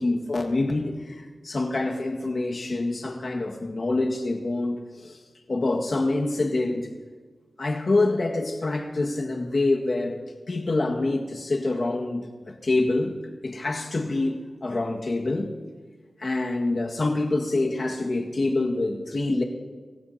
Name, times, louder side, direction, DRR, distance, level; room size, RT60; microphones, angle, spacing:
voice 1, 0.0-5.2 5.5-6.9 7.6-10.2 10.5-13.2 13.4-15.5 16.2-19.4, left 2 dB, 55° left, 1 dB, 1.8 m, -26 dB
26.0 x 15.5 x 2.9 m, 1.4 s
wide cardioid pair, 70°, 0 cm